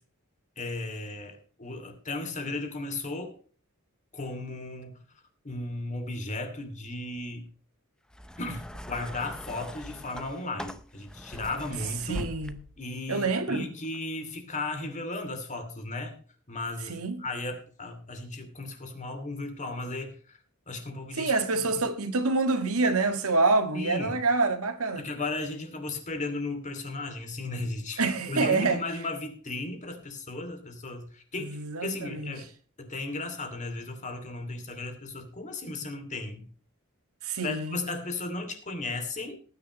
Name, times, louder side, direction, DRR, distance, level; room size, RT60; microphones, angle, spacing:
voice 1, 0.6-3.4 4.1-5.0 5.4-7.5 8.4-12.2 12.8-16.2 16.5-20.4 20.7-21.3 23.7-24.2 25.0-28.0 28.3-32.5 32.8-36.5 37.4-39.4, left 2 dB, 35° left, 2.6 m, -35 dB
sound 1, 8.1-12.9 13.8-14.0, equal, 5° left, 0.6 m, -41 dB
voice 2, 12.1-12.6 13.1-13.6 16.9-17.2 21.1-25.1 28.0-28.8 31.4-32.3 37.2-37.8, right 3 dB, 80° right, 1.6 m, -26 dB
19.0 x 9.6 x 3.1 m
head